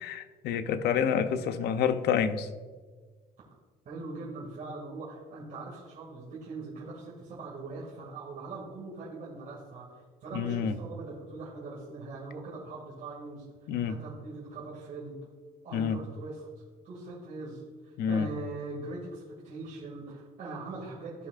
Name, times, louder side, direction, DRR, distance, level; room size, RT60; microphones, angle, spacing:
voice 1, 0.0-2.5 10.3-10.8 13.7-14.0 15.7-16.0 18.0-18.3, left 7 dB, 75° left, 9 dB, 0.6 m, -28 dB
voice 2, 3.9-15.2 15.6-16.5 16.8-21.3, right 3 dB, 50° right, -6 dB, 2.2 m, -41 dB
15.0 x 5.6 x 2.5 m, 1.4 s
cardioid pair, 110°, 17 cm